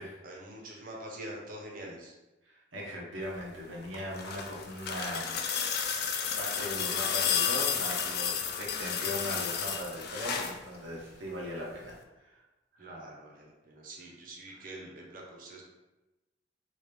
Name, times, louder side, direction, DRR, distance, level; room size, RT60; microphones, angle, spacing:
voice 1, 0.2-2.1 12.8-15.6, right 1 dB, 50° right, -1 dB, 0.7 m, -45 dB
voice 2, 2.5-5.7 6.4-12.4 12.7-12.9 14.5-14.7, equal, 85° right, -2 dB, 0.9 m, -39 dB
sound 1, 3.8-10.6 11.9-12.0, left 7 dB, 60° left, 0.4 m, -32 dB
3.1 x 2.4 x 3.2 m, 1.1 s
head